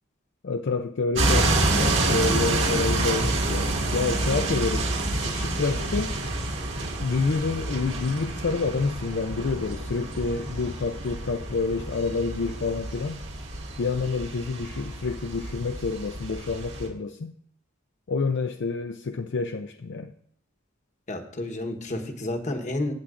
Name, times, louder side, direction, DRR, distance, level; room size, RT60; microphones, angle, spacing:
voice 1, 0.4-6.2 7.0-13.2 13.8-17.3 18.1-20.1, left 4 dB, 55° left, 0.4 m, -28 dB
sound 1, 1.1-16.9, right 2 dB, 60° right, 1.9 m, -28 dB
voice 2, 21.1-22.9, left 1 dB, 35° left, 1.1 m, -30 dB
16.5 x 7.2 x 2.5 m
head